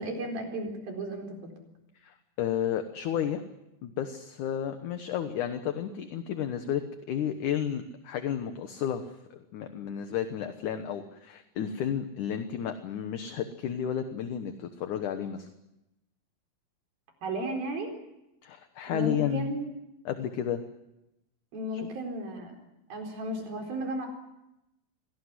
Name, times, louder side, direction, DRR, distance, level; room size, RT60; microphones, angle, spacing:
voice 1, 0.0-1.5 17.2-17.9 18.9-19.7 21.5-22.5 22.9-24.1, right 1 dB, 80° right, 3 dB, 6.1 m, -34 dB
voice 2, 2.0-3.4 3.8-6.8 7.1-9.0 9.3-15.5 18.4-19.5 20.1-20.6 21.7-21.9, left 9 dB, 65° left, 8 dB, 2.5 m, -32 dB
25.5 x 18.5 x 9.7 m, 0.92 s
omnidirectional pair, 4.2 m